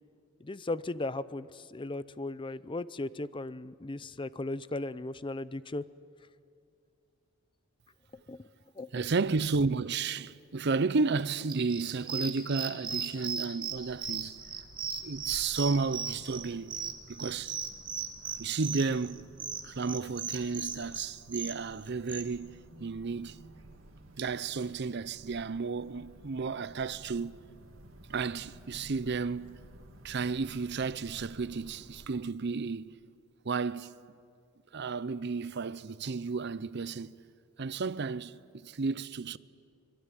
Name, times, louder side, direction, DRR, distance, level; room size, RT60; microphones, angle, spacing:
voice 1, 0.4-5.8 8.3-8.5 8.8-9.0, left 2 dB, 25° left, 0.6 m, -37 dB
voice 2, 8.9-14.4 15.0-16.7 17.1-17.6 18.4-19.3 19.6-23.4 24.2-27.4 28.1-29.6 30.0-32.9 33.4-33.9 34.7-37.1 37.6-39.4, right 4 dB, 55° right, 0.6 m, -32 dB
sound 1, 11.5-22.2, right 6 dB, 25° right, 1.8 m, -37 dB
sound 2, 13.7-32.1, right 1 dB, 85° right, 2.7 m, -54 dB
24.5 x 22.5 x 9.9 m
head